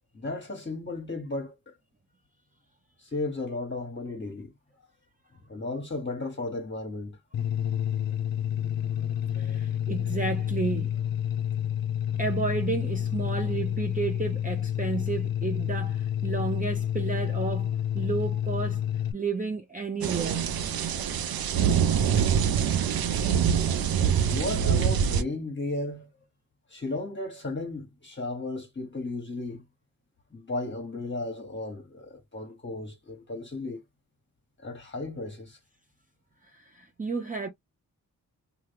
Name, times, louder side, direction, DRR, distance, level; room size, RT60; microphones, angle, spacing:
voice 1, 0.1-1.7 3.0-4.5 5.5-7.2 9.3-9.6 23.9-26.1 26.7-29.6 30.3-33.8 34.6-35.6, left 2 dB, 30° left, 1.0 m, -35 dB
sound 1, 7.3-19.1, left 10 dB, 75° left, 0.6 m, -29 dB
voice 2, 9.3-11.0 12.2-18.8 19.1-20.5 36.4-37.5, right 4 dB, 20° right, 0.6 m, -32 dB
sound 2, 20.0-25.2, right 7 dB, 75° right, 0.6 m, -25 dB
2.8 x 2.4 x 3.2 m
cardioid pair, 50°, 36 cm